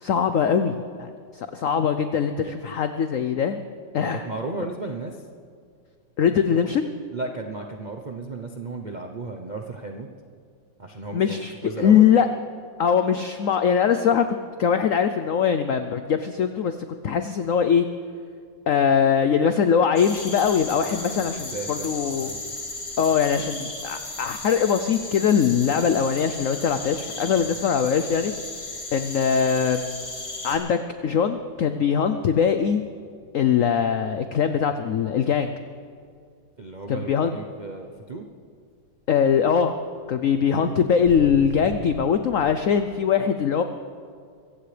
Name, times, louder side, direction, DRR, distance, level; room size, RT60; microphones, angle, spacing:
voice 1, 0.0-3.6 3.9-4.2 6.2-6.8 11.1-12.3 12.8-14.2 14.6-16.7 17.0-17.9 18.7-22.3 23.0-28.3 28.9-29.8 30.4-32.8 33.3-35.5 36.9-37.3 39.1-39.8 40.1-43.6, left 7 dB, 80° left, 9 dB, 0.7 m, -22 dB
voice 2, 4.0-5.2 6.5-6.6 7.1-10.1 10.8-12.1 20.9-22.6 23.4-23.5 27.5-27.8 36.6-38.3 40.5-41.3, right 3 dB, 65° right, 3 dB, 0.4 m, -35 dB
sound 1, 19.9-30.6, left 2 dB, 40° left, 2.7 m, -35 dB
sound 2, 31.0-36.3 36.7-42.8, equal, 30° right, 2.3 m, -45 dB
24.5 x 15.5 x 3.3 m, 2.2 s
omnidirectional pair, 2.1 m